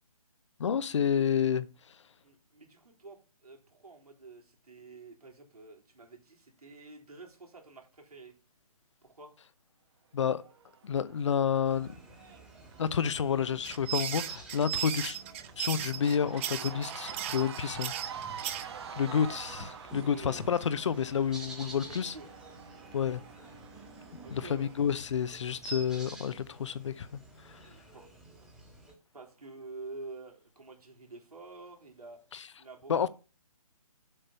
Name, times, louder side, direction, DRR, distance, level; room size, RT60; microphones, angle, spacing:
voice 1, 0.6-1.7 10.1-10.4 10.8-11.9 12.8-15.2 15.6-17.9 19.0-22.1 22.9-23.2 24.3-27.2 27.5-27.6 32.9-33.1, left 7 dB, 50° left, 0.7 m, -29 dB
voice 2, 2.2-8.3 9.0-9.4 14.7-14.9 20.0-20.5 21.6-22.3 24.2-24.7 27.5-28.5 29.1-32.2 32.6-33.1, right 3 dB, 85° right, 3.7 m, -49 dB
Cheering / Crowd, 10.4-25.7, right 7 dB, 45° right, 1.3 m, -48 dB
sound 1, 11.6-28.9, right 2 dB, 5° right, 1.5 m, -49 dB
sound 2, 13.6-18.6, right 11 dB, 20° right, 0.6 m, -36 dB
7.9 x 6.6 x 5.5 m
figure-of-eight pair, 150°, 19 cm